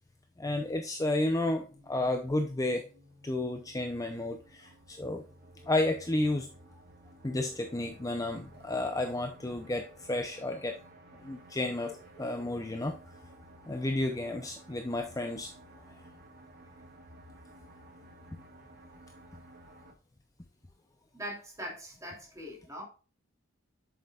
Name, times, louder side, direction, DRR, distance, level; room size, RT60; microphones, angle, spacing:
voice 1, 0.4-2.8 3.2-5.2 5.6-6.5 7.2-10.8 11.2-13.0 13.7-15.5, left 2 dB, 15° left, 5 dB, 0.6 m, -32 dB
sound 1, 1.0-19.9, right 1 dB, 50° right, 1.5 m, -55 dB
voice 2, 21.1-22.8, equal, 15° right, 0 dB, 2.9 m, -41 dB
8.0 x 6.8 x 2.4 m, 0.35 s
head